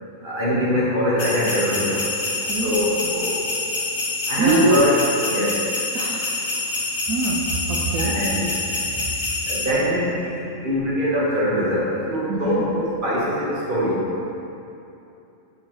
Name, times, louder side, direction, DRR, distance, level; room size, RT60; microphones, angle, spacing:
voice 1, 0.2-2.0 2.6-3.5 4.3-4.9 5.3-5.6 8.0-8.4 9.5-14.0, equal, 40° right, -7 dB, 1.8 m, -23 dB
sound 1, 1.2-9.7, left 3 dB, 45° left, 1.3 m, -26 dB
voice 2, 2.4-3.1 4.4-4.9 5.9-6.7 7.1-7.4 7.7-8.6 8.9-9.3 12.3-12.6, right 2 dB, 85° right, -2 dB, 1.1 m, -24 dB
6.3 x 4.9 x 4.7 m, 2.8 s
omnidirectional pair, 1.4 m